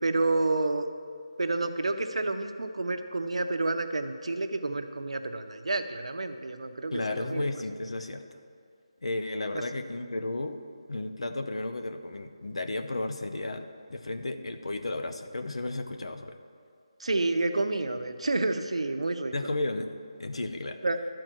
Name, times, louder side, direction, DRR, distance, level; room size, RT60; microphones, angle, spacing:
voice 1, 0.0-0.9 1.4-7.4 17.0-19.5 20.8-21.0, right 2 dB, 75° right, 7 dB, 0.8 m, -29 dB
voice 2, 6.9-8.4 9.0-10.6 10.9-16.4 19.3-19.9 20.2-20.8, left 2 dB, 70° left, 8 dB, 0.8 m, -33 dB
12.0 x 4.6 x 7.6 m, 2.3 s
figure-of-eight pair, 180°, 3 cm